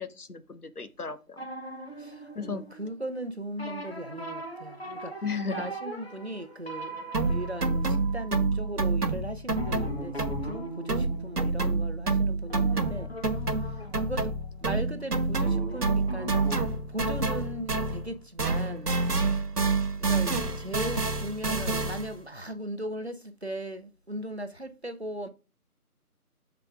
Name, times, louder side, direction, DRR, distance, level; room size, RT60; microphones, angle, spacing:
voice 1, 0.0-1.5 2.3-2.6 5.2-5.6, left 5 dB, 75° left, 1.0 m, -35 dB
sound 1, 1.4-3.2 3.6-8.8 9.5-15.0 15.4-16.6, right 1 dB, 40° left, 1.4 m, -40 dB
voice 2, 2.0-5.1 5.5-13.1 14.0-14.3 14.6-16.3 16.9-18.9 20.1-25.3, right 1 dB, 45° right, 0.6 m, -38 dB
sound 2, 7.1-10.6 10.9-18.1 18.4-22.2, right 3 dB, 85° right, 1.2 m, -28 dB
7.8 x 5.9 x 2.4 m
figure-of-eight pair, 175°, 46 cm